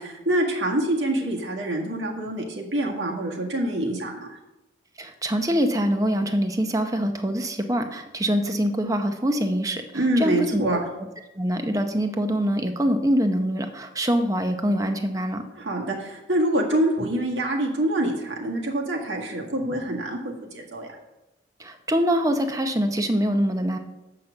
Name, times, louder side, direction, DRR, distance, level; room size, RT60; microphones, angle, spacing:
voice 1, 0.0-4.4 9.9-10.8 15.6-20.9, right 1 dB, 85° right, 0 dB, 1.8 m, -26 dB
voice 2, 5.0-10.8 11.4-15.4 21.6-23.8, equal, 20° right, 6 dB, 0.7 m, -24 dB
7.5 x 5.8 x 6.5 m, 1.0 s
head